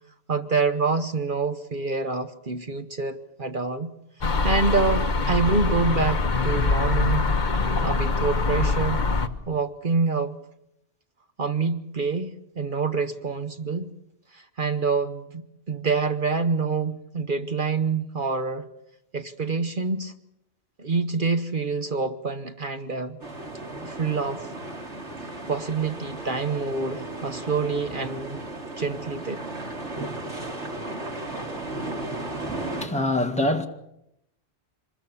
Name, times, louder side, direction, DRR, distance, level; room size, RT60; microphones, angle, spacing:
voice 1, 0.3-3.9 4.2-7.3 7.8-9.0 9.5-10.3 11.4-13.9 14.3-15.4 15.7-18.7 19.1-20.1 20.8-23.2 23.8-24.5 25.5-28.4 28.8-29.4, right 4 dB, 50° right, 1.1 m, -26 dB
sound 1, 4.2-9.3, left 3 dB, 45° left, 1.3 m, -23 dB
sound 2, 23.2-32.9, right 2 dB, 85° right, 3.3 m, -35 dB
voice 2, 32.5-33.7, left 1 dB, 5° left, 1.8 m, -25 dB
26.0 x 21.0 x 7.0 m
omnidirectional pair, 1.1 m